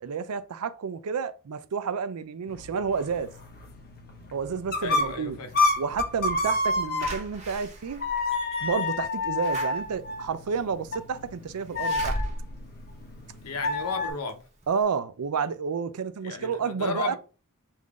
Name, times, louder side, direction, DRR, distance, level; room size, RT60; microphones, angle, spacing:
voice 1, 0.0-3.3 4.3-5.4 5.8-8.0 8.6-12.2 14.7-17.2, right 6 dB, 85° right, 0.5 m, -30 dB
sound 1, 2.5-7.5 8.0-14.1, left 2 dB, 45° left, 0.8 m, -30 dB
voice 2, 4.8-5.5 13.4-14.5 16.2-17.2, left 4 dB, 85° left, 0.8 m, -34 dB
Slam / Alarm, 7.0-13.8 14.3-14.4 14.6-14.7, equal, 30° right, 1.1 m, -38 dB
3.7 x 2.6 x 4.7 m
head